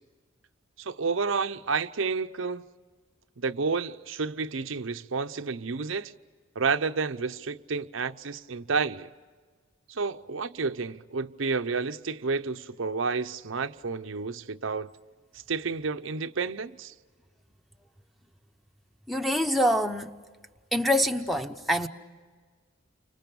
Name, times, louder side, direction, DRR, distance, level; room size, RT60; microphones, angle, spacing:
voice 1, 0.8-2.6 3.4-6.1 6.6-9.1 9.9-14.9 15.5-16.9, right 4 dB, 75° right, 0.7 m, -30 dB
voice 2, 19.1-20.1 20.7-21.9, equal, ahead, 0.9 m, -25 dB
30.0 x 25.5 x 7.0 m
head